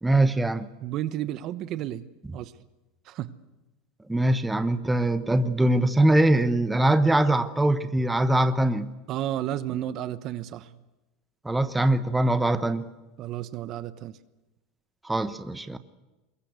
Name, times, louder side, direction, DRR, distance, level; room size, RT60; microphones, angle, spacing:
voice 1, 0.0-0.7 4.1-8.9 11.4-12.9 15.0-15.8, right 1 dB, 5° right, 10 dB, 1.0 m, -22 dB
voice 2, 0.8-2.1 2.3-2.5 3.0-3.4 9.1-10.7 13.2-14.2, right 12 dB, 45° right, 13 dB, 1.1 m, -32 dB
23.5 x 22.0 x 8.2 m, 1.1 s
supercardioid pair, 125°, 0 cm